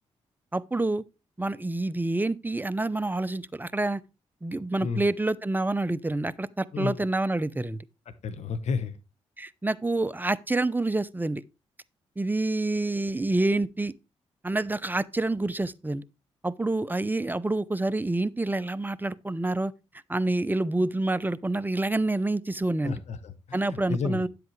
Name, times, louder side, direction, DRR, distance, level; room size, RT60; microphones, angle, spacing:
voice 1, 0.5-1.0 1.4-4.0 4.4-7.8 9.4-11.4 12.2-13.9 14.4-16.0 16.4-19.7 20.1-22.9 23.5-24.3, right 2 dB, 15° right, 0.7 m, -27 dB
voice 2, 6.7-7.0 8.2-9.0 22.8-24.3, left 5 dB, 65° left, 1.1 m, -31 dB
10.5 x 7.8 x 3.2 m
supercardioid pair, 50°, 12 cm